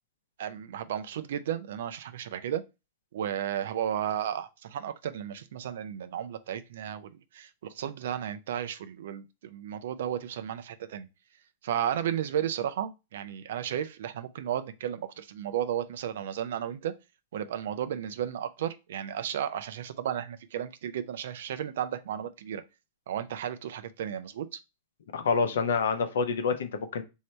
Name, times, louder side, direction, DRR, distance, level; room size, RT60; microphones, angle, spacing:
voice 1, 0.4-2.6 3.1-11.1 11.6-16.9 17.3-22.6 23.1-24.6, right 10 dB, 70° right, 0.4 m, -33 dB
voice 2, 25.1-27.0, left 5 dB, 75° left, 0.7 m, -27 dB
3.2 x 2.7 x 4.2 m
hypercardioid pair, 115°, 0 cm